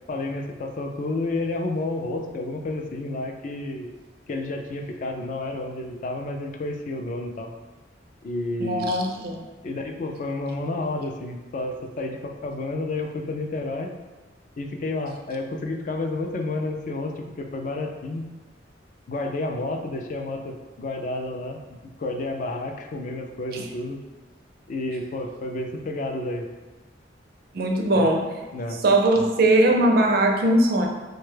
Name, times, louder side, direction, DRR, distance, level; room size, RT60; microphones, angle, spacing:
voice 1, 0.1-3.9 4.3-7.5 8.2-8.9 9.6-13.9 14.6-18.3 19.1-24.0 24.7-26.5 27.9-28.1 28.5-28.8, left 2 dB, 45° left, 4 dB, 0.3 m, -30 dB
voice 2, 8.6-9.5 23.5-23.7 27.5-28.2 28.8-30.9, right 1 dB, 55° right, 2 dB, 0.4 m, -20 dB
3.4 x 2.2 x 3.2 m, 1.2 s
head